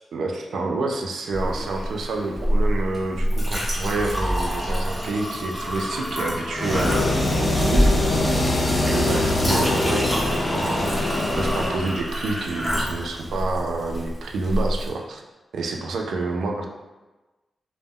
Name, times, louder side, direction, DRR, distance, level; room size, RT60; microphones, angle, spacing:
voice 1, 0.1-8.0 8.8-10.8 11.4-15.2 15.5-16.7, right 3 dB, 90° right, 1 dB, 0.3 m, -28 dB
Chink clink, 1.3-14.9, equal, 10° right, 0.8 m, -27 dB
sound 1, 6.5-11.9, left 1 dB, 35° left, 0.5 m, -23 dB
2.1 x 2.0 x 3.5 m, 1.1 s
cardioid pair, 90°, 0 cm